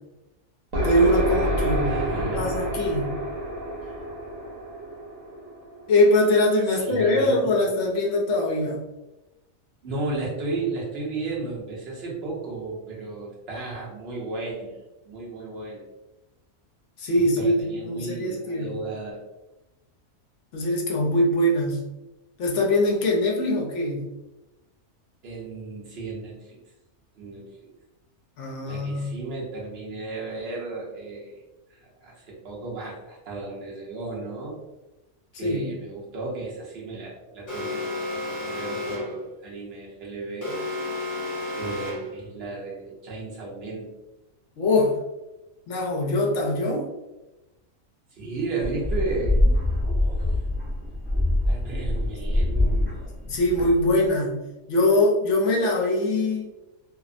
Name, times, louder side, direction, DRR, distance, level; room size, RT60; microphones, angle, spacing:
sound 1, 0.7-6.3, equal, 75° right, 1.1 m, -28 dB
voice 1, 0.8-3.1 5.9-8.8 17.0-18.7 20.5-21.8 22.4-24.0 28.4-29.1 35.3-35.7 44.6-44.9 45.7-46.9 53.3-54.4 54.7-56.4, left 1 dB, 65° left, -1 dB, 0.9 m, -22 dB
voice 2, 1.8-2.5 6.7-7.6 9.8-14.8 15.0-15.9 17.1-19.2 25.2-26.6 27.2-27.7 28.7-31.4 31.7-34.6 35.3-40.6 41.6-43.9 48.1-50.4 51.5-53.0, right 3 dB, 50° right, -4 dB, 0.9 m, -34 dB
Alarm, 37.5-39.2 40.4-42.2, left 2 dB, 30° left, 0.8 m, -32 dB
sound 2, 48.6-54.1, left 1 dB, 30° right, 0.5 m, -24 dB
2.7 x 2.0 x 2.4 m, 1.0 s
omnidirectional pair, 1.5 m